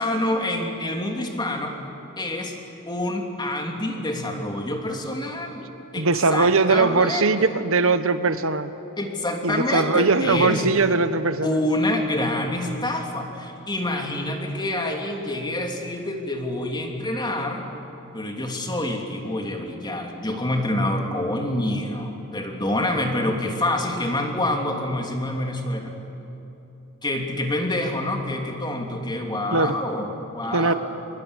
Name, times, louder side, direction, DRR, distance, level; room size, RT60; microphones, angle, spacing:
voice 1, 0.0-1.8 2.2-2.6 2.9-7.5 9.0-10.6 11.4-17.6 18.1-25.9 27.0-30.7, left 1 dB, 20° left, 2 dB, 3.1 m, -27 dB
voice 2, 5.9-8.7 9.4-11.6 29.5-29.7 30.5-30.7, right 3 dB, 65° right, 11 dB, 1.3 m, -20 dB
25.5 x 23.5 x 10.0 m, 2.9 s
head